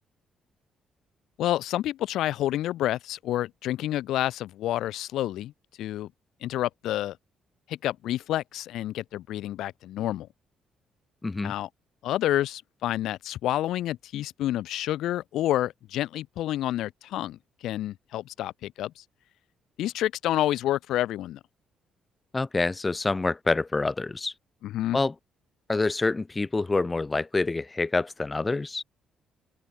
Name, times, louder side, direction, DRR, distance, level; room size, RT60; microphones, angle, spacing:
voice 1, 1.4-5.5 5.8-6.1 6.4-7.2 7.7-10.3 11.4-11.7 12.0-19.0 19.8-21.4 24.6-25.0, left 13 dB, 85° left, 0.4 m, -29 dB
voice 2, 11.2-11.5 22.3-24.3 24.9-25.1 25.7-28.8, left 3 dB, 20° left, 3.2 m, -27 dB
open air
cardioid pair, 90°, 0 cm